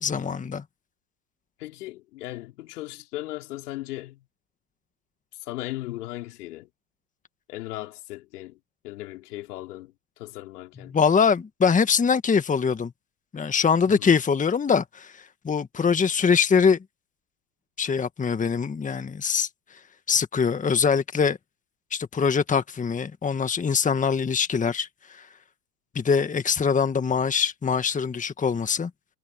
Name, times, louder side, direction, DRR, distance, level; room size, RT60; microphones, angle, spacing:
voice 1, 0.0-0.6 10.9-12.9 13.3-16.8 17.8-19.5 20.1-21.4 21.9-25.3 25.9-28.9, left 6 dB, 15° left, 1.7 m, -23 dB
voice 2, 1.6-4.2 5.4-6.7 7.5-8.6 8.8-10.9 13.9-14.1, left 17 dB, 70° left, 4.3 m, -37 dB
hypercardioid pair, 95°, 48 cm